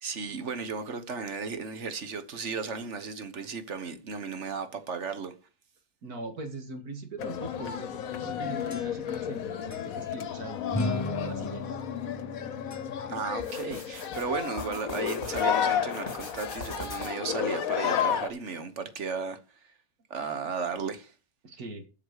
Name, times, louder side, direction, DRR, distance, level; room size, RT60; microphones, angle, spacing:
voice 1, 0.0-5.3 13.1-19.4 19.6-19.7 20.1-21.1, right 5 dB, 55° right, 1.4 m, -35 dB
voice 2, 6.0-11.7 21.4-21.9, right 2 dB, 85° right, 2.3 m, -41 dB
sound 1, 7.2-18.3, left 8 dB, 70° left, 1.3 m, -32 dB
sound 2, 8.2-9.4 9.7-9.9 10.7-13.3, left 1 dB, 15° left, 0.7 m, -36 dB
sound 3, 13.4-15.5 15.9-17.3, left 2 dB, 35° left, 2.6 m, -42 dB
8.1 x 6.6 x 6.4 m
omnidirectional pair, 1.6 m